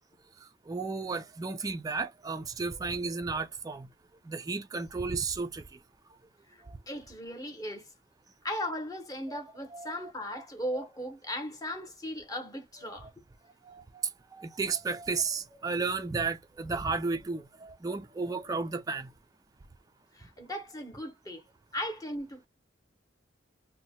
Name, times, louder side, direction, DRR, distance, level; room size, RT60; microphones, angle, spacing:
voice 1, 0.7-3.9 4.3-5.6 6.7-6.8 9.3-9.4 9.7-10.1 10.7-10.8 13.7-13.8 14.3-19.1, right 4 dB, 20° right, 0.3 m, -33 dB
voice 2, 6.5-7.9 8.4-13.1 20.1-21.4 21.7-22.5, equal, 20° left, 0.8 m, -37 dB
2.7 x 2.1 x 4.1 m
head